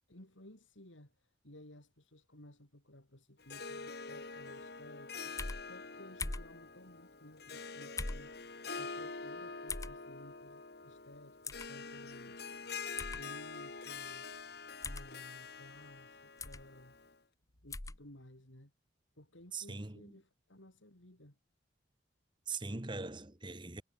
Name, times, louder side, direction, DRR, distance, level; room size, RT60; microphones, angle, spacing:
voice 1, 0.1-5.4 5.7-12.6 13.1-14.3 14.8-17.0 17.6-18.7 19.2-21.4, left 1 dB, 90° left, 5.6 m, -57 dB
Harp, 3.4-17.1, left 4 dB, 55° left, 1.8 m, -46 dB
sound 1, 5.4-5.6 6.2-6.5 8.0-8.3 9.7-9.9 11.4-11.7 13.0-13.2 14.8-15.1 16.4-16.6 17.7-18.0, left 3 dB, 15° left, 0.9 m, -39 dB
voice 2, 19.5-20.0 22.5-23.8, right 3 dB, 25° right, 1.4 m, -41 dB
head